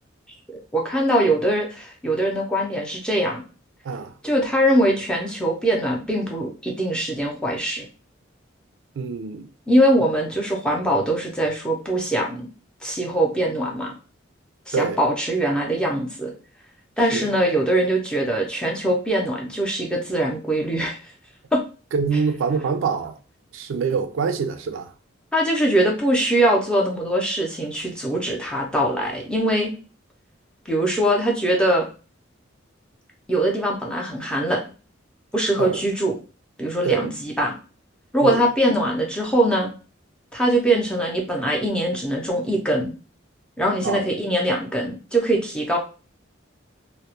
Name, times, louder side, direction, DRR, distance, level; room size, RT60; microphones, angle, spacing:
voice 1, 0.7-3.4 4.2-7.8 9.7-12.4 12.8-13.9 14.7-16.3 17.0-21.0 21.5-21.6 25.3-29.7 30.7-31.9 33.3-34.6 35.3-36.1 36.6-37.5 38.1-39.7 40.3-42.9 43.6-45.8, right 1 dB, 5° left, 0.5 m, -22 dB
voice 2, 9.0-9.5 14.7-15.0 17.1-17.3 21.9-23.2 23.5-24.9 35.6-35.8 36.8-37.1 38.2-38.4 43.8-44.0, right 5 dB, 80° right, 0.3 m, -25 dB
2.3 x 2.0 x 2.8 m
head